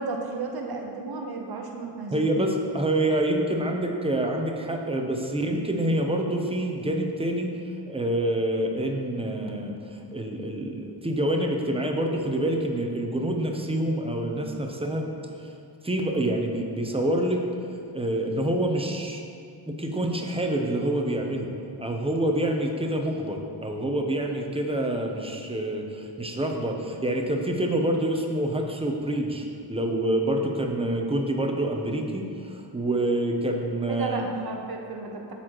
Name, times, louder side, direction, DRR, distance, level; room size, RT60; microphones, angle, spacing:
voice 1, 0.0-2.5 33.9-35.3, right 3 dB, 55° right, 2 dB, 0.9 m, -33 dB
voice 2, 2.1-7.6 7.9-15.1 15.4-15.5 15.8-17.4 17.9-19.2 19.6-21.5 21.8-34.3, right 1 dB, 15° right, 2 dB, 0.7 m, -27 dB
12.0 x 4.2 x 3.1 m, 2.3 s
wide cardioid pair, 110°, 45 cm